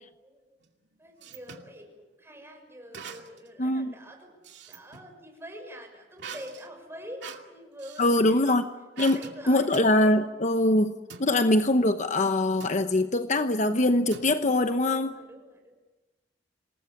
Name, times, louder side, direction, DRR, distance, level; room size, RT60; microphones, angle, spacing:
voice 1, 0.2-0.6 1.0-4.4 4.7-8.6 9.0-9.9 14.9-15.8, equal, 15° right, 3 dB, 6.4 m, -45 dB
sound 1, 0.6-1.7 2.9-3.5 3.9-5.1 6.2-8.2 9.0-9.4 9.7-10.0 11.1-11.3 12.6-12.9 14.1-14.7, right 6 dB, 75° right, 2.4 m, -44 dB
voice 2, 3.6-3.9 8.0-8.6 9.0-9.2 9.5-10.9 11.2-15.1, left 1 dB, 40° left, 8 dB, 0.9 m, -23 dB
26.5 x 19.5 x 8.5 m, 1.1 s
head